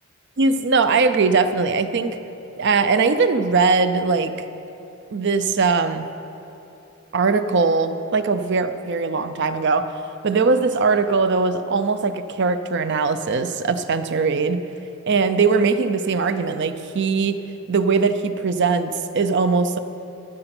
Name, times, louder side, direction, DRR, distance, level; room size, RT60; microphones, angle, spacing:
voice 1, 0.4-2.2 2.6-4.3 5.1-6.1 7.1-10.0 10.2-14.6 15.1-17.4 17.7-19.8, right 4 dB, 55° right, 10 dB, 0.6 m, -20 dB
14.5 x 7.8 x 6.0 m, 2.9 s
head